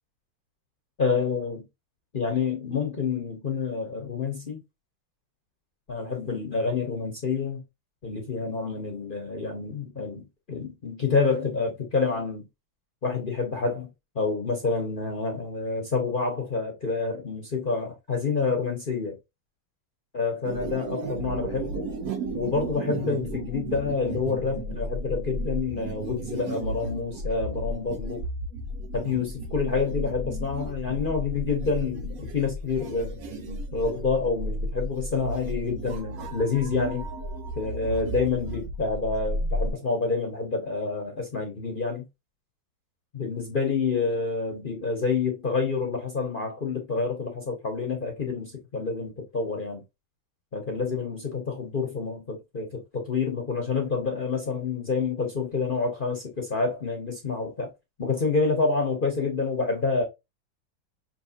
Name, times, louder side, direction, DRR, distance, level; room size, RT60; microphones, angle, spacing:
voice 1, 1.0-1.7 2.1-4.6 5.9-7.6 8.0-12.5 13.0-13.9 14.1-19.2 20.1-21.9 22.3-28.2 28.9-37.1 37.5-42.0 43.1-49.8 50.5-57.7 58.0-60.0, left 4 dB, 50° left, 0.6 m, -28 dB
sound 1, 20.4-39.7, right 1 dB, 60° right, 0.9 m, -33 dB
5.9 x 2.7 x 2.8 m
omnidirectional pair, 2.2 m